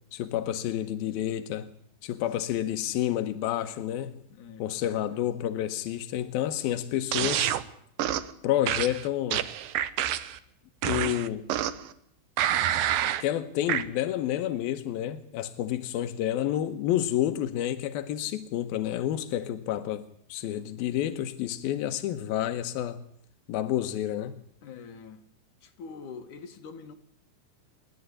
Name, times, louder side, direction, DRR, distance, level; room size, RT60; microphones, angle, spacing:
voice 1, 0.1-1.7 2.0-4.2 4.6-7.5 8.4-9.5 10.8-11.5 13.2-20.0 20.3-23.0 23.5-24.4, left 12 dB, 75° left, 2.2 m, -29 dB
voice 2, 4.3-5.5 24.6-25.2 25.6-26.9, left 5 dB, 55° left, 2.6 m, -45 dB
sound 1, 7.1-7.6 8.0-8.3 8.7-10.4 10.8-11.9 12.4-13.2 13.7-13.8, right 11 dB, 90° right, 1.9 m, -27 dB
28.5 x 12.0 x 9.8 m
omnidirectional pair, 5.7 m